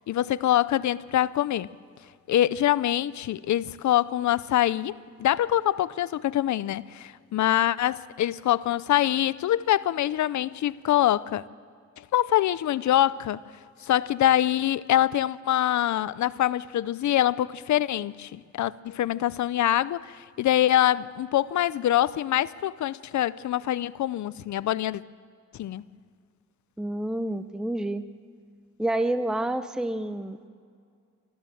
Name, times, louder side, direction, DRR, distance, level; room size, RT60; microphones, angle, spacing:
voice 1, 0.0-1.7 2.3-4.9 5.2-11.4 12.1-13.4 13.8-25.0 25.6-25.8, left 12 dB, 75° left, 18 dB, 0.5 m, -24 dB
voice 2, 26.8-28.0 28.8-30.5, right 1 dB, ahead, 11 dB, 0.7 m, -28 dB
25.5 x 14.0 x 7.7 m, 2.1 s
cardioid pair, 90°, 29 cm